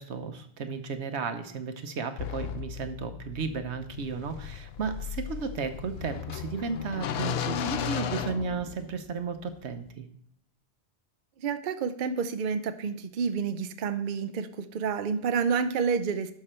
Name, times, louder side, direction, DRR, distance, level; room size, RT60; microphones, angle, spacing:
voice 1, 0.0-10.1, right 5 dB, 75° right, 9 dB, 1.1 m, -34 dB
sound 1, 2.2-9.1, left 8 dB, 65° left, 0.8 m, -35 dB
voice 2, 11.4-16.3, right 6 dB, 55° right, 10 dB, 0.7 m, -29 dB
11.5 x 6.0 x 4.4 m, 0.66 s
omnidirectional pair, 1.1 m